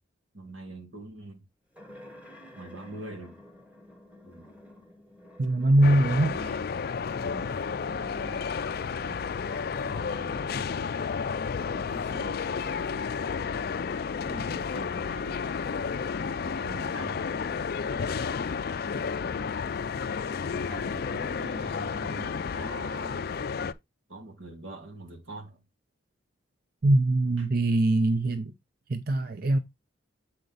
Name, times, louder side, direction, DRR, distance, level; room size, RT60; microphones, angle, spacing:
voice 1, 0.3-1.4 2.5-3.4 4.2-4.5 6.2-6.6 7.2-10.5 11.7-12.9 14.3-15.4 16.4-17.4 18.9-19.6 20.5-23.3 24.1-25.6, right 2 dB, 80° right, 2.5 m, -44 dB
sound 1, 1.7-6.4 7.1-7.2 9.3-11.9, left 1 dB, 10° right, 1.2 m, -51 dB
voice 2, 5.4-6.4 26.8-28.5 28.9-29.6, right 1 dB, 50° right, 0.6 m, -22 dB
sound 2, 5.8-23.7, left 6 dB, 50° left, 0.4 m, -32 dB
7.9 x 4.2 x 4.0 m
head